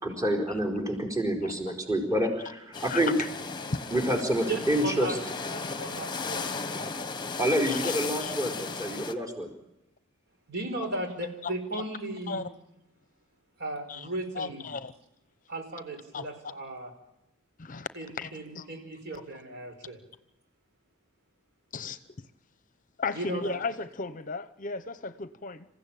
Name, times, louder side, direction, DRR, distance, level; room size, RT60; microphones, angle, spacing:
voice 1, 0.0-3.1 3.9-5.1 7.4-9.5, right 1 dB, 15° right, 4.6 m, -28 dB
voice 2, 1.4-1.8 2.8-3.3 3.7-3.8 7.6-8.3 11.4-11.8 12.3-12.5 13.9-14.1 14.4-14.9 16.1-16.3 17.6-17.9 18.2-18.7 21.7-22.3 23.0-25.7, left 4 dB, 40° left, 0.9 m, -35 dB
sound 1, 2.7-9.1, left 4 dB, 20° left, 1.3 m, -35 dB
voice 3, 4.5-5.2 5.5-6.9 10.5-12.4 13.6-14.7 15.5-16.9 17.9-20.0 23.1-23.6, right 2 dB, 55° right, 4.9 m, -36 dB
27.5 x 15.5 x 9.0 m
head